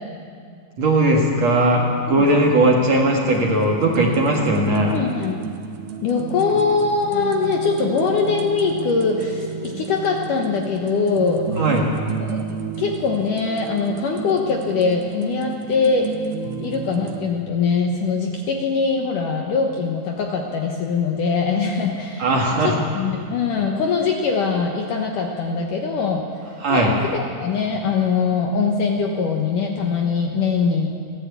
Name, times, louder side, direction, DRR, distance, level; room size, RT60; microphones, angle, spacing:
voice 1, 0.8-4.9 11.6-11.8 22.2-22.7 26.6-26.9, right 1 dB, 50° right, -1 dB, 2.4 m, -18 dB
sound 1, 3.2-17.2, right 5 dB, 70° right, 2.6 m, -31 dB
voice 2, 4.9-5.4 6.0-11.5 12.3-16.1 16.6-22.3 22.6-26.3 26.7-30.9, left 5 dB, 65° left, 2 dB, 2.2 m, -22 dB
29.5 x 10.5 x 8.3 m, 2.3 s
omnidirectional pair, 5.0 m